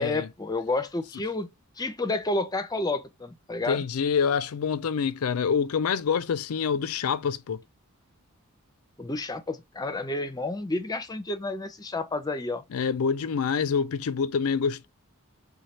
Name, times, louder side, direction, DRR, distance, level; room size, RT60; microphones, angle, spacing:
voice 1, 0.0-1.5 1.8-3.8 9.0-12.6, left 2 dB, 20° left, 0.5 m, -30 dB
voice 2, 3.7-7.6 12.7-14.9, left 6 dB, 80° left, 0.4 m, -26 dB
3.2 x 2.2 x 4.2 m
head